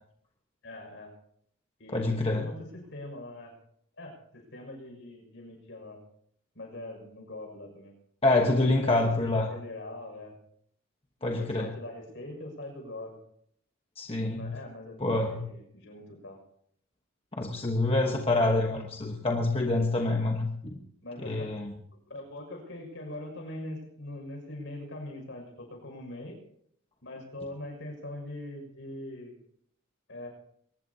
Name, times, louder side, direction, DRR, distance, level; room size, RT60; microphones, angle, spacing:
voice 1, 0.6-1.1 1.8-3.5 4.0-6.0 6.5-7.9 8.8-10.3 11.3-13.2 14.3-16.4 18.6-18.8 19.1-19.2 21.0-21.5 22.1-26.4 27.0-29.3 30.1-30.3, left 1 dB, 60° left, 2 dB, 6.3 m, -42 dB
voice 2, 1.9-2.5 8.2-9.5 11.2-11.7 14.0-14.5 15.0-15.4 17.4-20.8 21.2-21.7, left 2 dB, 25° left, 1 dB, 1.2 m, -26 dB
23.0 x 19.5 x 2.8 m, 0.70 s
head